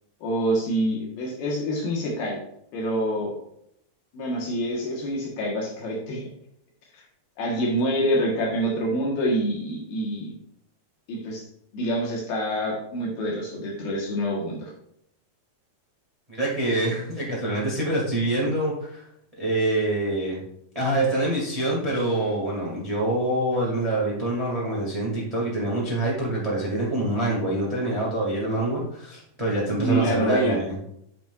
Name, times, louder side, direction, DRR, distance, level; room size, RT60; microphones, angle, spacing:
voice 1, 0.2-2.4 2.7-3.3 4.1-6.2 7.4-10.3 11.1-11.5 11.7-14.7 29.7-30.6, equal, 70° left, -2 dB, 3.0 m, -26 dB
voice 2, 16.3-19.0 19.4-20.4 20.7-30.8, right 1 dB, 45° right, -4 dB, 0.4 m, -25 dB
10.0 x 6.1 x 2.4 m, 0.75 s
omnidirectional pair, 4.8 m